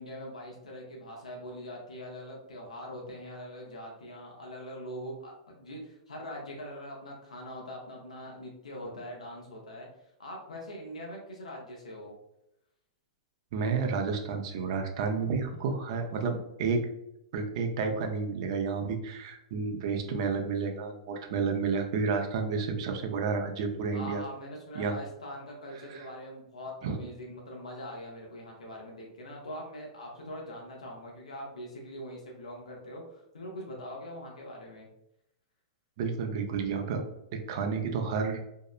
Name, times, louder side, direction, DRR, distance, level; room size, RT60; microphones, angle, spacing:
voice 1, 0.0-12.1 23.9-34.9, equal, 90° left, -1 dB, 0.6 m, -42 dB
voice 2, 13.5-16.8 17.3-24.2 24.8-24.9 26.8-27.0 36.0-37.0 37.5-38.4, right 5 dB, 55° right, 4 dB, 0.4 m, -30 dB
2.7 x 2.0 x 2.3 m, 0.83 s
hypercardioid pair, 115°, 4 cm